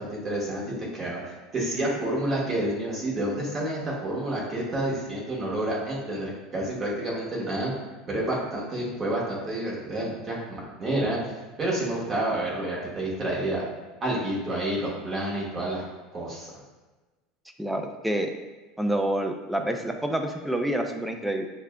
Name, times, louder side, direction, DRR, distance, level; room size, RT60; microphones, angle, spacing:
voice 1, 0.0-7.7 8.1-11.2 11.6-13.6 14.0-15.8 16.1-16.5, right 1 dB, 25° right, -5 dB, 1.3 m, -29 dB
voice 2, 17.6-18.3 18.8-21.5, right 1 dB, ahead, 4 dB, 0.4 m, -27 dB
6.3 x 2.3 x 2.2 m, 1.2 s
supercardioid pair, 120°, 0 cm